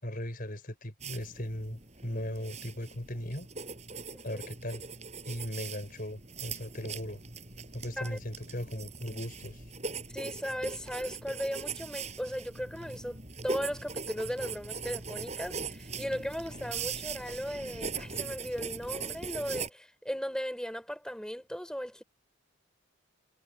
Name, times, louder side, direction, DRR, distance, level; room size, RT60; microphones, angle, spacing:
voice 1, 0.0-3.5 4.2-4.8 5.3-7.2 7.7-9.6, left 1 dB, 40° left, 5.5 m, -38 dB
sound 1, 1.0-19.7, right 5 dB, 30° right, 6.8 m, -41 dB
voice 2, 10.1-22.0, equal, 5° left, 5.1 m, -37 dB
head